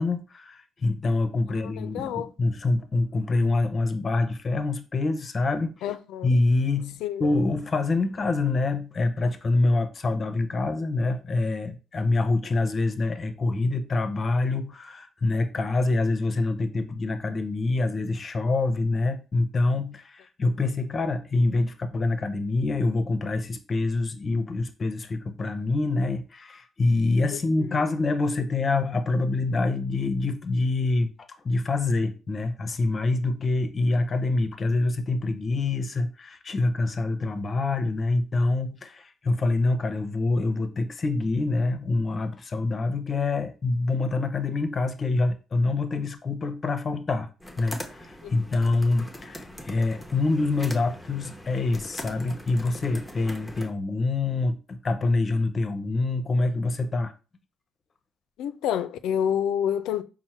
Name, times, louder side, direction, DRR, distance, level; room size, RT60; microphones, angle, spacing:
voice 1, 0.0-5.9 6.2-31.1 31.4-47.3 47.6-57.1, left 3 dB, 40° left, 0.6 m, -26 dB
voice 2, 1.6-2.3 5.8-6.3 7.0-7.2 27.6-27.8 48.2-48.3 58.4-60.0, left 9 dB, 90° left, 0.3 m, -28 dB
sound 1, 47.4-53.7, left 1 dB, 5° left, 0.7 m, -41 dB
4.3 x 2.1 x 4.3 m
cardioid pair, 90°, 0 cm